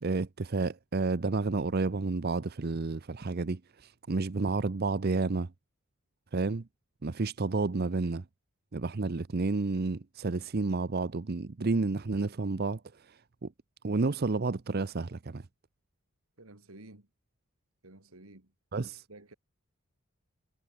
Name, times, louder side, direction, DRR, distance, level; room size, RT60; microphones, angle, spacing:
voice 1, 0.0-5.5 6.3-6.7 7.0-8.2 8.7-13.5 13.8-15.5 18.7-19.0, right 3 dB, 45° right, 0.6 m, -31 dB
voice 2, 16.4-17.1 17.8-18.5 19.1-19.3, right 2 dB, 80° right, 2.7 m, -52 dB
head